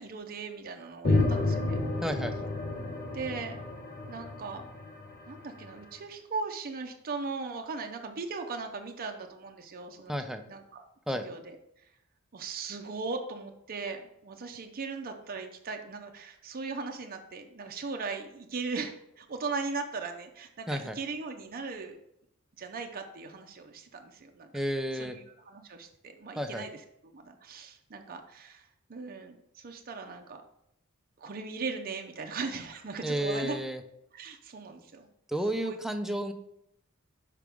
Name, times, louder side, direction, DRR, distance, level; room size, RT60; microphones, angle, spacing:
voice 1, 0.0-1.8 3.1-3.6 4.1-4.7 5.3-11.6 12.3-22.0 22.6-24.5 24.9-26.8 27.1-28.6 28.9-30.4 31.2-33.6 34.1-35.1 35.6-35.8, right 4 dB, 45° right, 4 dB, 0.6 m, -38 dB
sound 1, 1.0-5.7, left 2 dB, 40° left, 0.7 m, -30 dB
voice 2, 2.0-2.5 10.1-10.4 11.1-11.2 20.7-21.0 24.5-25.2 26.4-26.7 33.0-33.8 35.3-36.3, equal, ahead, 7 dB, 0.4 m, -32 dB
6.0 x 4.9 x 3.5 m, 0.77 s
head